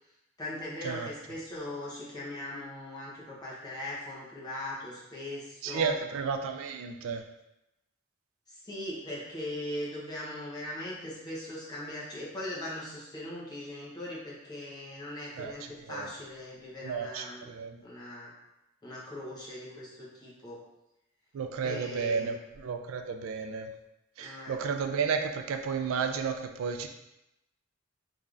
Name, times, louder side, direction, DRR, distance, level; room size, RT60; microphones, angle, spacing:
voice 1, 0.4-6.0 8.5-17.5 17.8-18.3 18.8-20.6 21.6-22.4 24.2-24.6, left 1 dB, 20° left, -7 dB, 1.0 m, -40 dB
voice 2, 5.6-7.2 15.4-15.5 15.9-16.1 16.8-17.7 21.3-22.3 22.6-23.7 24.2-26.3 26.6-26.9, right 6 dB, 80° right, 6 dB, 0.3 m, -32 dB
3.4 x 3.1 x 2.5 m, 0.90 s
head